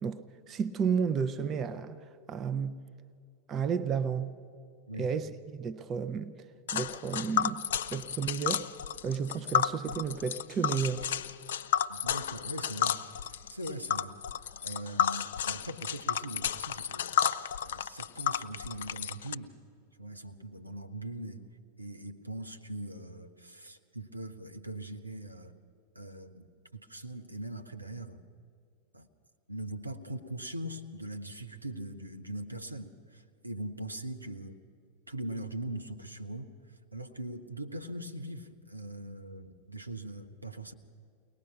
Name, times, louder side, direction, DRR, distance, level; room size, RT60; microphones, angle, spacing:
voice 1, 0.0-2.0 2.3-2.8 3.5-4.3 5.0-5.3 5.6-6.5 6.7-7.6 7.9-8.7 9.0-11.1, right 6 dB, 30° right, 0.8 m, -32 dB
Tick, 6.7-19.3, left 9 dB, 60° left, 0.5 m, -32 dB
voice 2, 11.9-14.2 14.6-17.3 17.6-19.5 20.0-21.4 21.8-25.5 25.9-28.2 28.9-29.1 29.5-34.6 35.1-40.7, right 1 dB, 85° right, 1.1 m, -41 dB
22.5 x 19.0 x 6.0 m
figure-of-eight pair, 90°, 0 cm